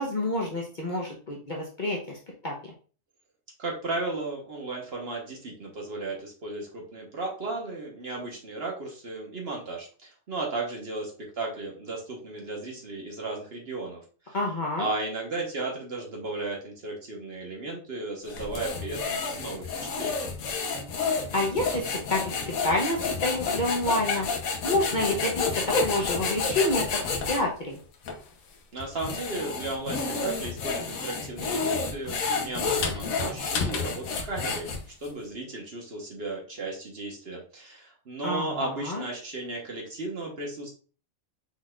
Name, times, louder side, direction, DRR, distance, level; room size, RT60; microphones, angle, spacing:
voice 1, 0.0-2.2 2.4-2.7 14.3-14.9 21.3-24.3 24.6-26.9 27.3-27.8 38.2-39.0, left 1 dB, 40° left, -2 dB, 0.9 m, -28 dB
voice 2, 3.6-14.4 14.8-20.3 28.7-34.7 35.0-40.7, right 2 dB, 50° right, 0 dB, 1.4 m, -35 dB
sound 1, 18.3-27.4 28.0-28.2 28.8-35.1, left 4 dB, 85° left, 1.3 m, -30 dB
5.5 x 4.0 x 2.4 m, 0.39 s
omnidirectional pair, 1.4 m